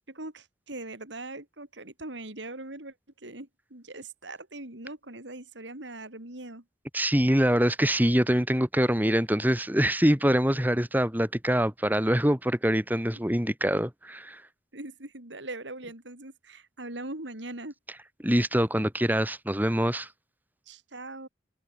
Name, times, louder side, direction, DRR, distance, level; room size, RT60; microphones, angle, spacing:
voice 1, 0.1-6.6 14.7-17.7 20.7-21.3, right 2 dB, 80° right, 4.3 m, -41 dB
voice 2, 6.9-14.4 18.2-20.1, equal, 10° right, 3.0 m, -24 dB
head